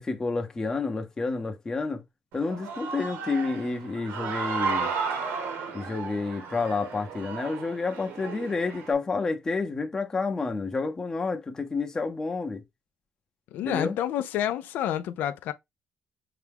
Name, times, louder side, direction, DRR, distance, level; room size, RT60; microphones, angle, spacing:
voice 1, 0.0-2.0 2.3-4.9 5.7-12.6 13.6-14.0, left 4 dB, 20° left, 0.7 m, -29 dB
Human voice / Cheering, 2.3-8.9, right 5 dB, 85° right, 1.0 m, -34 dB
voice 2, 13.5-15.5, left 11 dB, 80° left, 0.4 m, -29 dB
5.8 x 2.2 x 3.4 m
cardioid pair, 160°, 3 cm